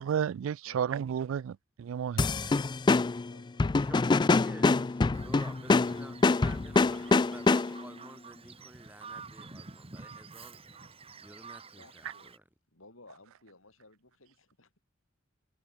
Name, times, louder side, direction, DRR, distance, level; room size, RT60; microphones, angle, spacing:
voice 1, 0.0-2.5, right 8 dB, 80° right, 0.3 m, -32 dB
voice 2, 0.7-1.1 11.8-12.3 12.7-14.8, left 2 dB, 85° left, 7.4 m, -58 dB
sound 1, 2.2-7.9, left 3 dB, 20° left, 0.3 m, -25 dB
voice 3, 3.8-4.8 5.2-10.6 11.2-12.4, right 1 dB, 10° right, 2.2 m, -51 dB
Bird vocalization bird call bird song, 5.1-12.4, right 4 dB, 30° right, 1.6 m, -49 dB
head